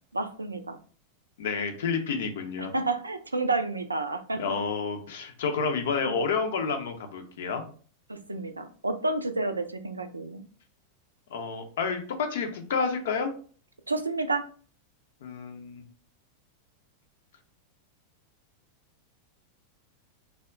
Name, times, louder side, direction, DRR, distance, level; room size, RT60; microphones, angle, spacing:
voice 1, 0.1-0.8 2.6-4.4 6.0-6.2 8.1-10.4 13.9-14.5, right 2 dB, 80° right, 8 dB, 0.3 m, -30 dB
voice 2, 1.4-2.7 4.3-7.6 11.3-13.3 15.2-15.8, left 5 dB, 60° left, 5 dB, 0.6 m, -30 dB
3.4 x 2.1 x 3.6 m, 0.42 s
figure-of-eight pair, 90°, 0 cm